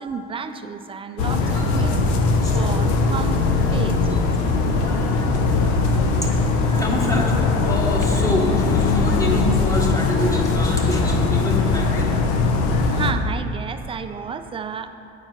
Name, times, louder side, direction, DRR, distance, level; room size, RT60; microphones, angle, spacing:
voice 1, 0.0-2.0 2.5-4.0 12.9-14.9, right 6 dB, 20° right, 9 dB, 0.3 m, -31 dB
sound 1, 1.2-13.1, left 3 dB, 80° left, 0.7 m, -20 dB
voice 2, 1.5-1.9 2.4-2.5 4.7-6.0 6.7-7.3 7.6-12.1, left 1 dB, 10° left, -2 dB, 1.3 m, -27 dB
8.8 x 4.5 x 4.4 m, 2.6 s
supercardioid pair, 95°, 30 cm